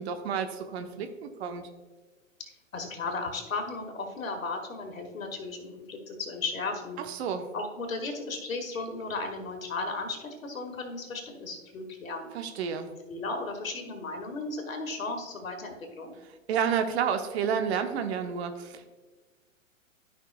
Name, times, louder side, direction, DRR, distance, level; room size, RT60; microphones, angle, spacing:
voice 1, 0.0-1.6 7.0-7.5 12.3-12.9 16.5-18.9, right 7 dB, 55° right, 7 dB, 1.0 m, -30 dB
voice 2, 2.4-7.0 7.5-12.3 13.1-16.2, left 3 dB, 80° left, 4 dB, 1.9 m, -35 dB
13.5 x 5.6 x 2.3 m, 1.3 s
hypercardioid pair, 115°, 40 cm